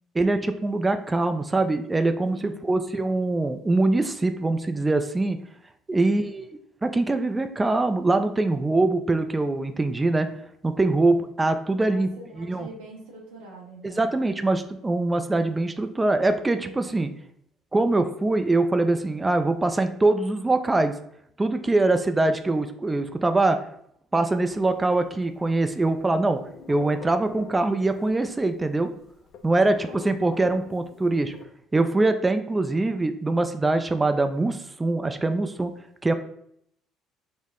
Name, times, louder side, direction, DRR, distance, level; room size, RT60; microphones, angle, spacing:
voice 1, 0.1-5.4 5.9-6.5 6.8-10.3 10.6-12.1 12.4-12.7 13.8-17.1 17.7-20.9 21.4-23.6 24.1-26.4 26.7-28.9 29.4-31.3 31.7-35.7 36.0-36.1, right 2 dB, 20° right, 8 dB, 0.4 m, -23 dB
voice 2, 2.3-2.7 5.9-6.1 11.8-14.2 29.5-30.0, right 2 dB, 80° right, -3 dB, 0.8 m, -45 dB
sound 1, 24.3-25.5 25.8-28.4 28.6-28.7 28.9-31.4, left 6 dB, 60° left, 0.4 m, -44 dB
4.7 x 2.1 x 3.6 m, 0.70 s
hypercardioid pair, 55°, 0 cm